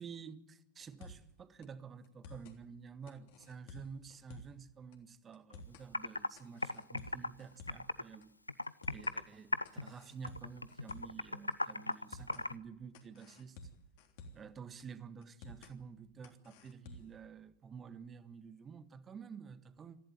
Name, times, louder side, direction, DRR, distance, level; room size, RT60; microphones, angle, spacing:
voice 1, 0.0-8.3 8.9-13.6 14.3-20.0, right 6 dB, 20° right, 1.5 m, -50 dB
sound 1, 0.8-1.3 1.6-1.7 2.0-2.6 3.1-4.6 4.9-5.0 5.3-5.9 6.4-7.9 8.2-8.3 8.6-9.2 9.6-11.2 11.5-11.6 11.9-12.5 12.9-14.5 14.8-14.9 15.2-15.7 16.2-17.2, left 2 dB, 50° left, 3.3 m, -53 dB
Computer keyboard, 5.5-5.6 5.9-6.3 6.6-8.2 8.5-9.3 9.5-9.9 10.2-12.6, left 2 dB, 85° left, 0.8 m, -37 dB
26.5 x 15.0 x 9.3 m
figure-of-eight pair, 90°, 0 cm